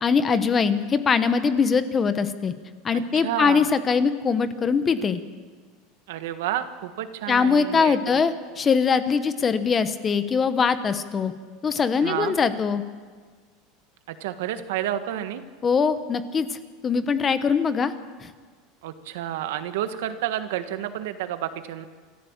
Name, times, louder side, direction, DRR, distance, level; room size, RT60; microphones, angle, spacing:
voice 1, 0.0-2.5 2.8-5.2 7.3-11.3 11.6-12.8 15.6-16.5 16.8-17.9 18.2-18.3, left 5 dB, 20° left, 12 dB, 1.0 m, -22 dB
voice 2, 2.9-3.7 6.1-8.2 12.0-12.4 14.2-15.4 18.8-21.9, right 12 dB, 80° right, 9 dB, 1.5 m, -30 dB
27.0 x 14.5 x 7.3 m, 1.6 s
supercardioid pair, 160°, 0 cm